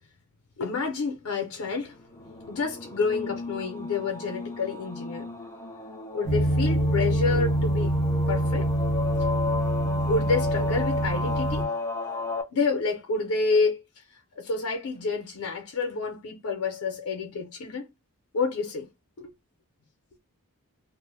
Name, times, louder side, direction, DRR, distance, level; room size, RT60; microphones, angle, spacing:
voice 1, 0.6-2.0 2.5-5.3 6.1-7.9 8.3-8.7 9.8-11.7 12.5-14.0 14.4-17.9 18.3-18.9 19.2-19.3, left 4 dB, 75° left, 0.5 m, -28 dB
sound 1, 2.1-12.4, left 3 dB, 15° left, 0.4 m, -34 dB
sound 2, 6.2-11.6, right 1 dB, 55° right, 0.9 m, -25 dB
2.4 x 2.0 x 3.2 m
head